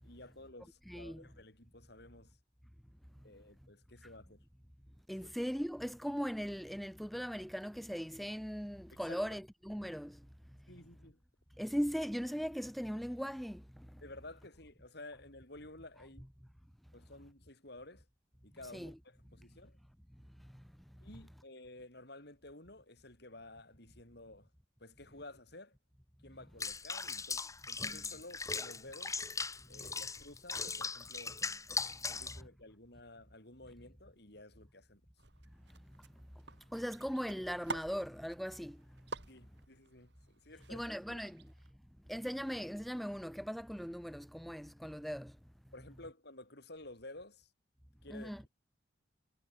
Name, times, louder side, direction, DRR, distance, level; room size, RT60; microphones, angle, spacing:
voice 1, 0.0-2.4 3.2-4.4 5.1-5.3 8.9-9.2 10.7-11.2 14.0-16.3 16.9-18.1 18.4-19.8 21.0-24.5 24.8-25.8 26.2-29.2 29.7-31.4 32.1-35.0 39.3-40.8 41.1-41.2 45.7-47.5 48.0-48.4, left 2 dB, 60° left, 8.0 m, -53 dB
voice 2, 0.9-1.2 5.1-10.2 11.6-13.6 18.7-19.0 36.7-38.8 40.7-41.4 42.1-45.3 48.1-48.4, equal, ahead, 2.4 m, -39 dB
Water / Bathtub (filling or washing), 26.6-32.4, left 4 dB, 15° left, 2.3 m, -39 dB
sound 1, 35.2-41.7, right 3 dB, 65° right, 4.1 m, -49 dB
head